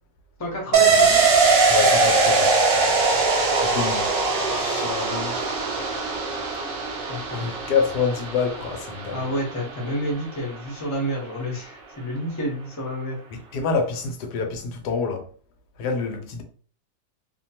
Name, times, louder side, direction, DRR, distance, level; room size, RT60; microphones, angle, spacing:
voice 1, 0.4-1.2 7.1-7.5 9.1-13.2, equal, 20° left, 0.5 m, -29 dB
sound 1, 0.7-10.1 10.4-10.5, right 4 dB, 70° right, 0.5 m, -21 dB
voice 2, 1.7-2.5 3.6-4.1 4.4-5.4 7.4-9.3 13.5-15.3 15.8-16.4, left 5 dB, 90° left, 1.2 m, -27 dB
2.8 x 2.2 x 2.8 m
omnidirectional pair, 1.7 m